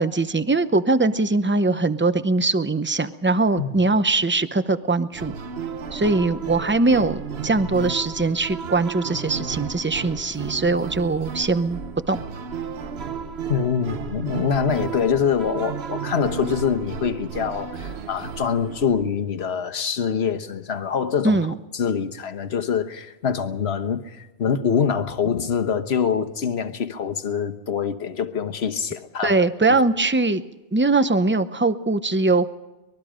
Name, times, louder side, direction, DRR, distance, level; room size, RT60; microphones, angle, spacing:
voice 1, 0.0-5.3 5.9-11.8 12.1-12.2 21.2-21.5 29.2-30.4 30.7-32.5, right 3 dB, 10° right, 0.7 m, -21 dB
sound 1, 5.1-19.0, right 6 dB, 60° right, 1.2 m, -33 dB
voice 2, 13.5-29.8, left 7 dB, 60° left, 1.4 m, -25 dB
24.5 x 21.5 x 5.1 m
omnidirectional pair, 1.2 m